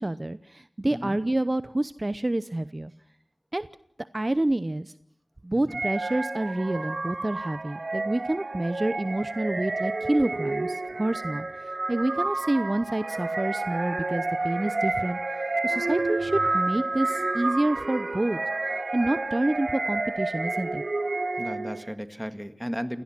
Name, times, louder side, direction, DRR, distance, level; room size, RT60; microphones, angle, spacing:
voice 1, 0.0-2.9 3.5-3.7 4.1-4.9 5.4-18.4 18.7-20.8, right 1 dB, 35° right, 14 dB, 0.8 m, -28 dB
sound 1, 5.7-21.9, right 2 dB, 65° right, 0.8 m, -30 dB
voice 2, 21.4-23.0, equal, ahead, 10 dB, 1.8 m, -34 dB
29.0 x 18.0 x 6.0 m, 0.74 s
wide cardioid pair, 50°, 0 cm